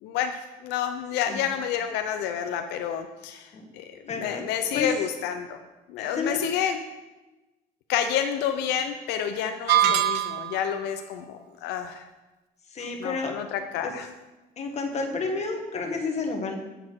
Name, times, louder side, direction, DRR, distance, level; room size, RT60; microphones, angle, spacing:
voice 1, 0.0-5.6 5.9-6.8 7.9-12.0 13.0-14.1, left 9 dB, 90° left, 6 dB, 0.6 m, -29 dB
voice 2, 4.1-4.9 6.0-6.4 9.8-9.9 12.7-13.4 13.8-13.9 14.6-16.5, left 4 dB, 40° left, 2 dB, 1.5 m, -31 dB
sound 1, 9.7-10.7, right 11 dB, 80° right, 0.6 m, -22 dB
8.1 x 7.5 x 4.5 m, 1.1 s
cardioid pair, 110°, 17 cm